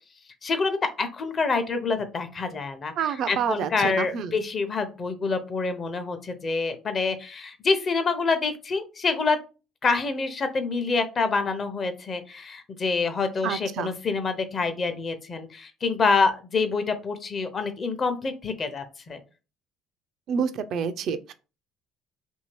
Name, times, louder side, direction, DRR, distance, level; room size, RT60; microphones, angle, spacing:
voice 1, 0.4-2.9 3.3-9.4 9.8-19.2, left 4 dB, 40° left, 0.6 m, -26 dB
voice 2, 3.0-4.4 13.4-13.9 20.3-21.3, right 7 dB, 65° right, 0.3 m, -28 dB
2.8 x 2.7 x 3.0 m
supercardioid pair, 70°, 0 cm